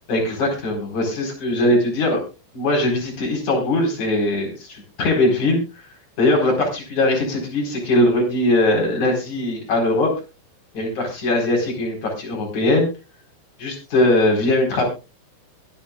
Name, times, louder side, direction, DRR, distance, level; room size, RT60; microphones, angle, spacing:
voice 1, 0.1-2.2 2.5-5.6 6.2-10.1 10.7-12.9 13.6-14.8, left 1 dB, 35° left, 1 dB, 5.3 m, -20 dB
22.5 x 9.3 x 2.4 m, 0.29 s
omnidirectional pair, 6.0 m